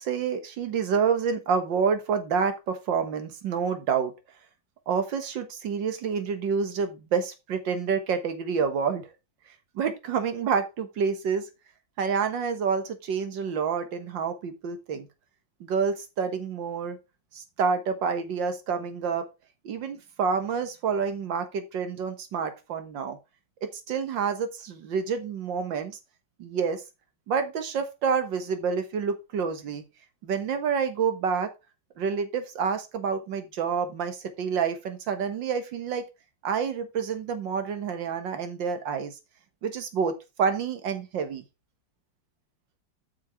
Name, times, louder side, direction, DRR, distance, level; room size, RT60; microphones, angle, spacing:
voice 1, 0.0-4.1 4.9-9.1 9.8-11.5 12.0-15.1 15.6-17.0 17.3-19.3 19.6-23.2 23.6-26.0 26.4-26.8 27.3-29.9 30.2-31.5 32.0-36.1 36.4-39.2 39.6-41.4, right 6 dB, 85° right, 2.0 m, -28 dB
8.1 x 6.1 x 4.5 m
omnidirectional pair, 1.9 m